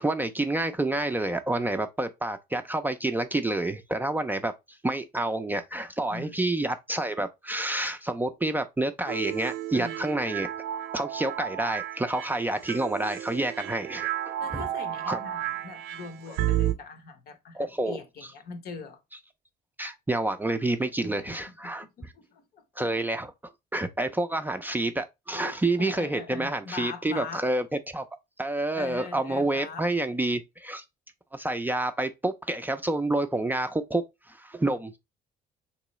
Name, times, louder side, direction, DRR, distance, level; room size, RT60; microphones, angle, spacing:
voice 1, 0.0-10.5 10.9-14.6 15.1-15.2 17.5-18.0 19.8-21.9 22.8-23.3 23.7-28.0 28.4-30.8 31.3-35.0, right 2 dB, 10° right, 0.4 m, -28 dB
sound 1, 9.1-16.7, right 12 dB, 90° right, 0.4 m, -32 dB
voice 2, 9.7-10.0 14.4-19.0 21.0-21.4 21.6-23.0 25.3-27.5 28.7-29.9, left 4 dB, 65° left, 0.8 m, -42 dB
3.7 x 3.0 x 3.0 m
cardioid pair, 110°, 17 cm